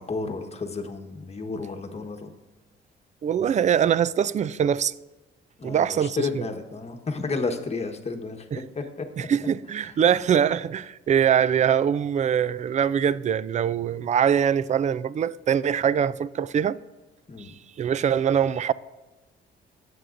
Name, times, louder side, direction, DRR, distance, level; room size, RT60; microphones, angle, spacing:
voice 1, 0.0-2.3 5.6-8.4 8.7-9.1 9.4-9.5 9.8-9.9 17.3-17.5, left 4 dB, 30° left, 1.2 m, -32 dB
voice 2, 3.2-4.9 5.6-6.4 8.5-8.6 9.2-16.8 17.8-18.7, right 8 dB, 35° right, 0.4 m, -23 dB
19.5 x 7.9 x 2.6 m
cardioid pair, 90°, 20 cm